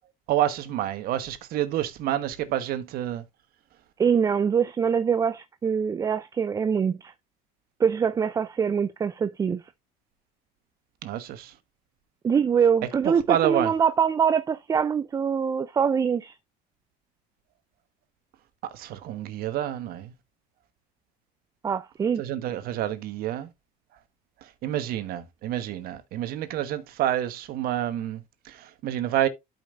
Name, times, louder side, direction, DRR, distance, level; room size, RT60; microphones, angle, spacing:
voice 1, 0.3-3.2 11.0-11.5 13.0-13.7 18.6-20.1 22.2-23.5 24.4-29.3, right 12 dB, 60° right, 1.2 m, -28 dB
voice 2, 4.0-7.1 7.8-9.6 12.2-16.3 21.6-22.2, right 7 dB, 20° right, 0.3 m, -24 dB
12.0 x 5.3 x 2.5 m
cardioid pair, 125°, 18 cm